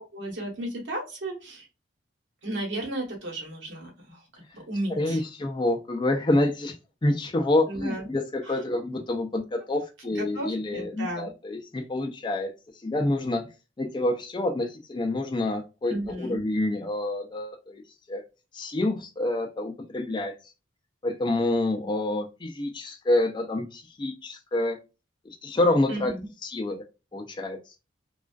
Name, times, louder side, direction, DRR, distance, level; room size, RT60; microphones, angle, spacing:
voice 1, 0.1-1.7 2.4-5.2 7.7-8.1 8.4-8.5 10.0-11.3 15.9-16.4 25.9-26.3, right 1 dB, 70° right, 0 dB, 1.0 m, -34 dB
voice 2, 5.0-6.8 7.0-12.5 12.8-13.4 13.8-17.8 18.1-18.2 18.5-20.3 21.0-24.8 25.4-26.1 26.4-26.8 27.1-27.8, left 2 dB, 25° left, 3 dB, 0.3 m, -27 dB
2.3 x 2.3 x 2.2 m, 0.29 s
head